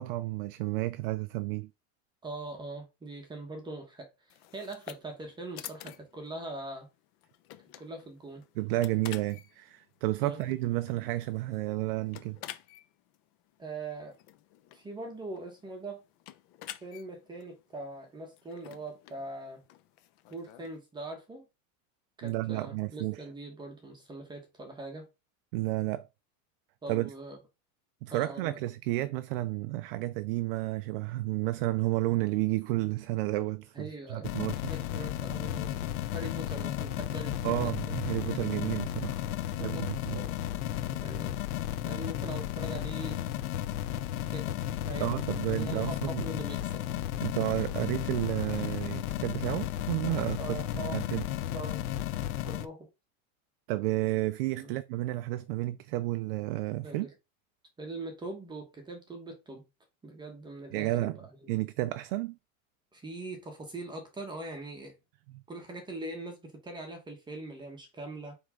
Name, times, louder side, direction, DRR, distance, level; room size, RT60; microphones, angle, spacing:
voice 1, 0.0-1.7 8.6-12.4 22.2-23.2 25.5-26.1 26.9-27.1 28.0-34.8 37.4-39.2 39.6-40.2 45.0-46.3 47.2-50.6 50.9-51.3 53.7-57.1 60.7-61.2 61.5-62.4 65.3-65.4, right 17 dB, 45° right, 0.4 m, -31 dB
voice 2, 2.2-6.9 7.8-8.4 10.2-10.4 13.6-14.2 14.7-16.0 16.8-19.6 20.3-21.5 22.2-25.1 26.8-27.4 28.1-28.6 33.7-34.3 34.7-38.8 39.6-40.4 40.8-41.4 41.8-43.3 44.3-46.9 50.4-51.1 51.5-51.8 52.4-52.9 54.6-54.7 56.8-57.1 57.8-59.6 60.0-61.3 62.9-65.0 65.5-68.4, right 2 dB, 10° right, 1.2 m, -42 dB
sound 1, 4.3-20.8, left 13 dB, 40° left, 0.7 m, -50 dB
sound 2, 34.2-52.7, left 12 dB, 85° left, 1.0 m, -34 dB
7.9 x 3.6 x 5.1 m
supercardioid pair, 175°, 42 cm